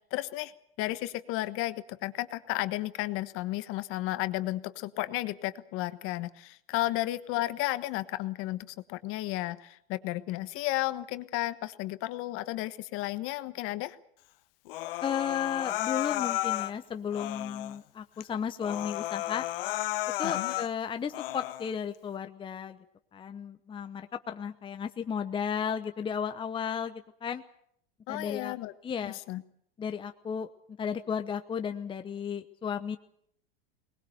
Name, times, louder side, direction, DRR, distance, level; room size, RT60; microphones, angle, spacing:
voice 1, 0.1-0.5 0.8-14.0 20.2-20.5 28.1-28.7 29.0-29.4, left 17 dB, 45° left, 12 dB, 1.4 m, -33 dB
Human voice, 14.7-16.7 17.1-17.8 18.2-18.3 18.6-20.7 21.1-21.7, left 16 dB, 65° left, 1.2 m, -33 dB
voice 2, 15.0-19.4 20.2-22.8 23.1-27.4 28.1-28.6 28.8-29.2 29.8-30.5 30.8-33.0, left 7 dB, 15° left, 8 dB, 0.9 m, -34 dB
22.0 x 20.0 x 7.9 m, 0.69 s
hypercardioid pair, 115°, 30 cm